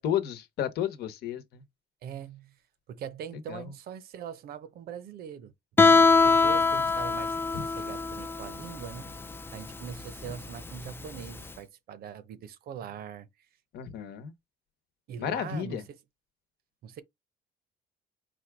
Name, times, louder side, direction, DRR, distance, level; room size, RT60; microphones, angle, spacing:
voice 1, 0.0-1.6 3.5-3.6 13.7-14.3 15.2-15.8, left 9 dB, 75° left, 1.0 m, -32 dB
voice 2, 2.0-2.5 2.9-5.5 6.0-9.1 9.5-13.3 15.1-16.0 16.8-17.0, right 8 dB, 65° right, 0.8 m, -42 dB
Guitar, 5.8-11.5, left 4 dB, 15° left, 0.3 m, -24 dB
4.3 x 2.4 x 4.6 m
cardioid pair, 110°, 17 cm